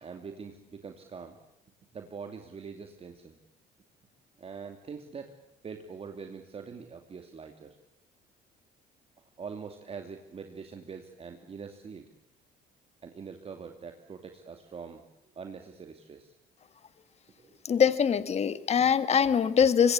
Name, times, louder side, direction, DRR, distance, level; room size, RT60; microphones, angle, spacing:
voice 1, 0.0-1.4 1.9-3.4 4.4-5.3 5.6-7.8 9.4-12.0 13.0-15.0 15.4-16.3 17.4-17.5, right 5 dB, 35° right, 2.6 m, -43 dB
voice 2, 17.6-19.9, left 7 dB, 40° left, 1.4 m, -23 dB
25.0 x 23.5 x 8.5 m
cardioid pair, 110°, 17 cm